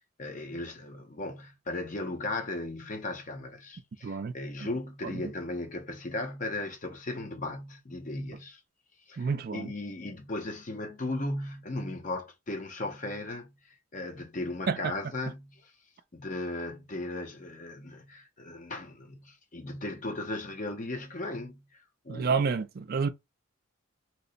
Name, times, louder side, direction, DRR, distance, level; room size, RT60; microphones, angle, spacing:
voice 1, 0.2-8.6 9.1-15.7 16.1-21.6 22.0-22.5, left 2 dB, 35° left, 0.6 m, -37 dB
voice 2, 4.0-4.3 5.1-5.2 9.2-9.7 14.7-14.9 22.1-23.1, right 5 dB, 45° right, 0.4 m, -29 dB
2.9 x 2.1 x 3.8 m
head